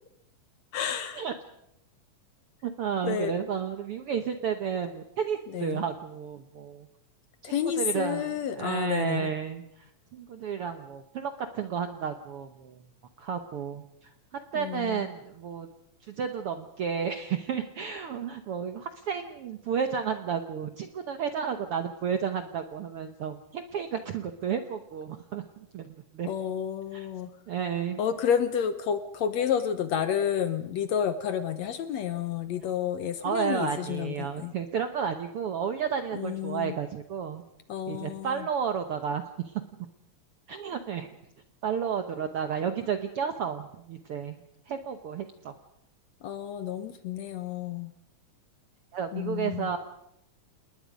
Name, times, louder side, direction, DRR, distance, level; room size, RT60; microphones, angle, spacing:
voice 1, 0.7-1.2 3.0-3.3 5.5-5.8 7.4-9.3 14.5-15.0 26.3-27.3 28.0-34.5 36.1-36.7 37.7-38.3 46.2-47.9 49.1-49.7, left 8 dB, 65° left, 10 dB, 1.8 m, -30 dB
voice 2, 2.6-6.9 7.4-12.8 13.2-15.7 16.0-26.3 26.9-27.1 27.5-28.0 33.2-37.4 37.9-39.6 40.5-41.1 41.6-44.4 44.7-45.5 48.9-49.8, right 7 dB, 70° right, 7 dB, 1.4 m, -32 dB
28.5 x 20.0 x 5.2 m, 0.78 s
omnidirectional pair, 3.8 m